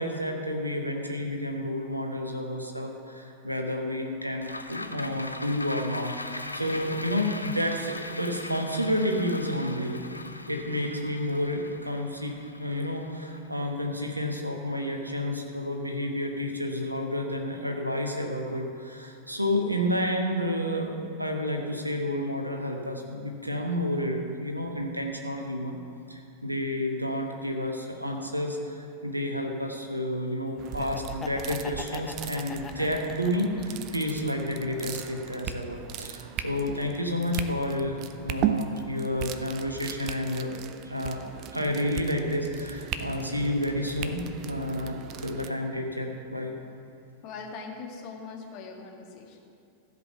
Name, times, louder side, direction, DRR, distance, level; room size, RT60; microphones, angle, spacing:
voice 1, 0.0-10.0 10.5-20.9 21.2-25.8 26.1-40.5 40.8-41.2 41.5-46.6, left 1 dB, 85° right, 3 dB, 1.1 m, -30 dB
sound 1, 4.4-14.9 15.3-15.4, left 2 dB, 85° left, 0.4 m, -40 dB
sound 2, 30.6-45.5, right 9 dB, 40° right, 0.5 m, -37 dB
Laughter, 30.7-33.8 34.3-35.4, left 5 dB, 20° left, 0.5 m, -42 dB
voice 2, 47.2-49.4, left 4 dB, 40° left, 1 dB, 1.6 m, -41 dB
14.5 x 5.3 x 6.8 m, 2.5 s
figure-of-eight pair, 90°, 0 cm